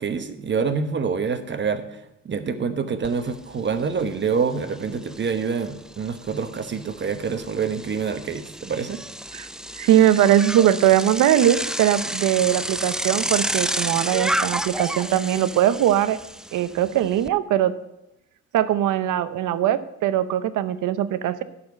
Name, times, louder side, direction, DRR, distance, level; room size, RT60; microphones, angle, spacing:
voice 1, 0.0-9.0, right 5 dB, 40° right, 9 dB, 1.0 m, -26 dB
Bicycle, 3.0-3.1 3.5-17.3, right 1 dB, ahead, 0.3 m, -31 dB
voice 2, 9.8-16.2 16.5-17.7 18.5-21.4, right 11 dB, 80° right, 13 dB, 0.7 m, -20 dB
11.5 x 4.3 x 7.0 m, 0.88 s
cardioid pair, 90°, 30 cm